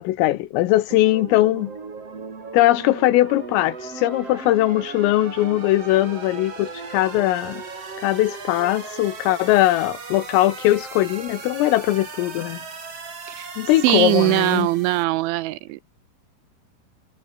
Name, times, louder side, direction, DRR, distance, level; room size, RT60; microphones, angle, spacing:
voice 1, 0.0-1.7 2.5-7.6 8.0-12.6 13.6-14.7, left 16 dB, 85° left, 3.9 m, -20 dB
sound 1, 0.9-15.0, right 4 dB, 30° right, 4.7 m, -37 dB
voice 2, 13.8-15.8, right 17 dB, 80° right, 2.9 m, -21 dB
omnidirectional pair, 5.9 m